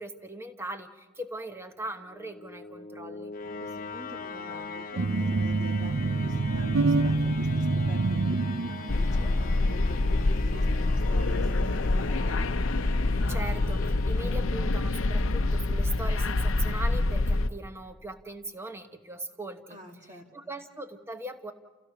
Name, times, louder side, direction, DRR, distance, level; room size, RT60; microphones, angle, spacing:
voice 1, 0.0-3.3 13.3-19.8 20.3-21.5, right 1 dB, 15° right, 7 dB, 1.1 m, -39 dB
sound 1, 2.0-15.0, left 4 dB, 45° left, 0.9 m, -42 dB
voice 2, 3.6-11.7 11.9-12.6 19.7-20.5, left 1 dB, 35° right, 2 dB, 2.6 m, -48 dB
sound 2, 5.0-9.2, right 3 dB, 90° right, 0.6 m, -26 dB
sound 3, 8.9-17.5, left 2 dB, 75° left, 0.7 m, -26 dB
29.5 x 16.0 x 6.0 m, 1.2 s
head